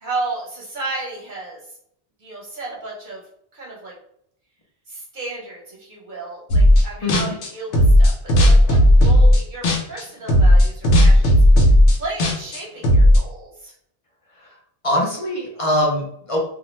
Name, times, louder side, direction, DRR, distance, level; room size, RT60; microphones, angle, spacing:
voice 1, 0.0-1.6 2.2-3.2 3.5-3.9 4.9-11.3 11.9-13.7, right 2 dB, 45° right, -4 dB, 0.9 m, -33 dB
sound 1, 6.5-6.8 7.1-10.0 10.3-13.2, equal, 75° left, 0.9 m, -13 dB
voice 2, 7.0-7.3 14.8-16.4, left 1 dB, 40° left, -2 dB, 0.5 m, -22 dB
2.5 x 2.1 x 3.0 m, 0.68 s
omnidirectional pair, 1.2 m